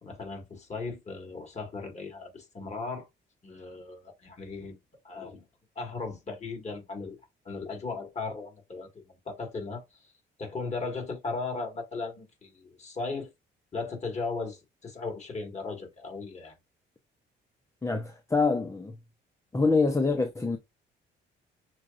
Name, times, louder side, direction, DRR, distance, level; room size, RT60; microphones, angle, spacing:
voice 1, 0.0-3.1 3.4-4.8 5.0-5.4 5.8-7.2 7.4-10.1 10.4-13.3 13.7-16.5, left 3 dB, 35° left, 2.0 m, -37 dB
voice 2, 17.8-19.0 19.5-20.6, left 4 dB, 15° left, 0.6 m, -25 dB
6.1 x 2.4 x 2.5 m
cardioid pair, 90°, 20 cm